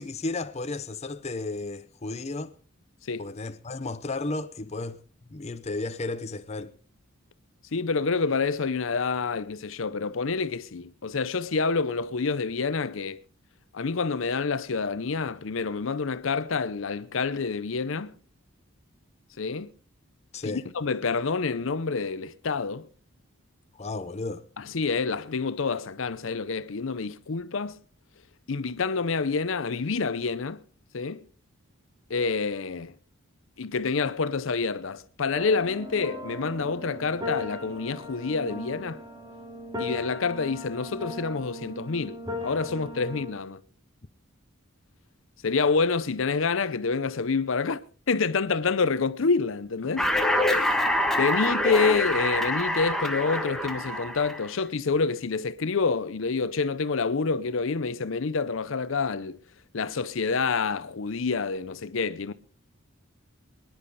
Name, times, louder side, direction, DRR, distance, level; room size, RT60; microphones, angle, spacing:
voice 1, 0.0-2.5 3.2-5.0 5.3-6.7 20.3-20.6 23.8-24.4, left 3 dB, 30° left, 0.7 m, -33 dB
voice 2, 7.7-13.2 13.7-18.1 19.4-19.7 20.4-22.9 24.6-27.8 28.5-30.6 30.9-31.3 32.1-32.9 33.6-39.0 39.8-43.6 45.4-50.1 51.2-59.4 59.7-62.3, left 4 dB, 70° left, 0.7 m, -27 dB
sound 1, 35.3-43.3, left 1 dB, 20° right, 2.7 m, -38 dB
sound 2, 50.0-54.4, left 1 dB, ahead, 1.3 m, -26 dB
24.0 x 10.5 x 4.0 m
head